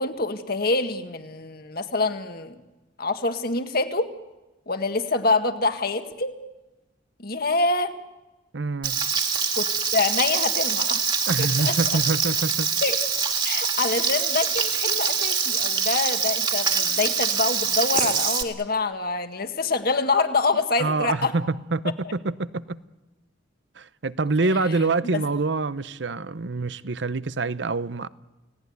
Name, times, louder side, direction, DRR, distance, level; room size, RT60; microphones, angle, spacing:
voice 1, 0.0-2.6 3.0-4.1 4.7-6.3 7.2-7.9 9.5-11.0 11.4-12.0 12.8-13.0 13.4-21.3 24.4-24.6 25.1-25.2, left 3 dB, 55° left, 1.8 m, -26 dB
voice 2, 8.5-9.0 11.3-12.7 20.8-21.4 21.7-22.8 23.8-28.1, right 3 dB, 70° right, 0.8 m, -26 dB
Frying (food), 8.8-18.4, right 6 dB, 25° right, 2.3 m, -24 dB
29.0 x 18.0 x 9.5 m
head